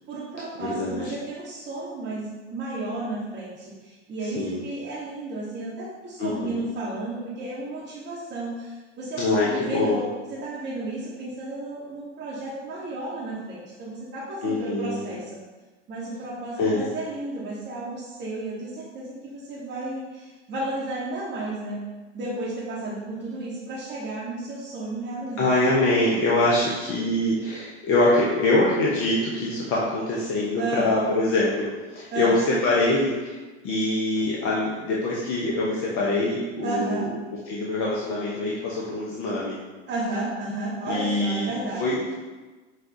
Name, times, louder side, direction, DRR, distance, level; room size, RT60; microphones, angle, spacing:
voice 1, 0.1-10.1 10.4-15.4 15.9-21.8 22.1-25.6 30.6-30.9 32.1-32.3 36.6-37.1 39.9-41.9, right 2 dB, 30° right, -8 dB, 0.9 m, -33 dB
voice 2, 0.6-1.1 4.4-4.6 6.2-6.6 9.2-10.0 14.4-15.0 16.6-16.9 25.4-33.4 33.6-37.0 37.5-39.6 40.9-41.5 41.8-42.2, left 2 dB, 40° left, -5 dB, 0.7 m, -24 dB
5.3 x 2.3 x 2.6 m, 1.2 s
figure-of-eight pair, 75°, 35 cm